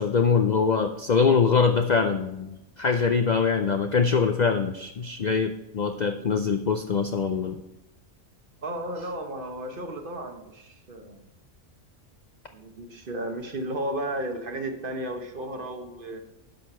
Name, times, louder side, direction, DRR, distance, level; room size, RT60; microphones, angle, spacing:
voice 1, 0.0-7.6, left 5 dB, 55° left, 6 dB, 0.5 m, -23 dB
voice 2, 8.6-11.2 12.5-16.2, right 1 dB, 45° right, 5 dB, 1.2 m, -34 dB
11.0 x 6.5 x 4.3 m, 0.94 s
omnidirectional pair, 1.3 m